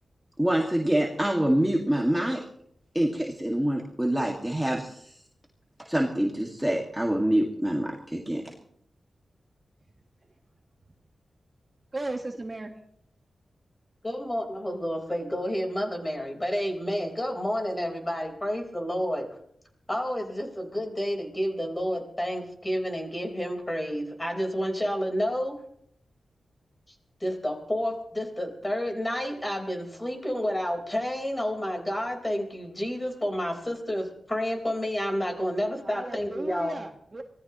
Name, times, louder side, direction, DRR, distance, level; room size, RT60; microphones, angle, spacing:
voice 1, 0.4-2.4 2.9-5.2 5.8-8.5, right 1 dB, 5° right, -1 dB, 2.0 m, -26 dB
voice 2, 11.9-12.8 35.8-37.2, right 2 dB, 30° right, 3 dB, 1.5 m, -36 dB
voice 3, 14.0-19.3 19.9-25.6 27.2-36.8, equal, 15° left, 3 dB, 4.2 m, -30 dB
25.0 x 17.5 x 3.0 m, 0.69 s
wide cardioid pair, 105°, 0 cm